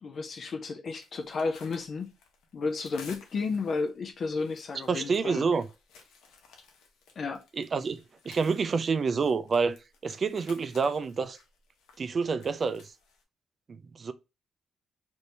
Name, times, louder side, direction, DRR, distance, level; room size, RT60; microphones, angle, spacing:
voice 1, 0.0-2.1 2.5-5.4 7.2-7.4, left 4 dB, 50° left, 0.5 m, -32 dB
sound 1, 1.0-13.2, left 5 dB, 85° left, 0.8 m, -56 dB
voice 2, 4.9-5.6 7.6-8.0 8.3-9.8 10.0-11.4 12.0-12.8 13.7-14.1, right 5 dB, 40° right, 0.3 m, -28 dB
2.7 x 2.6 x 3.2 m
cardioid pair, 90°, 0 cm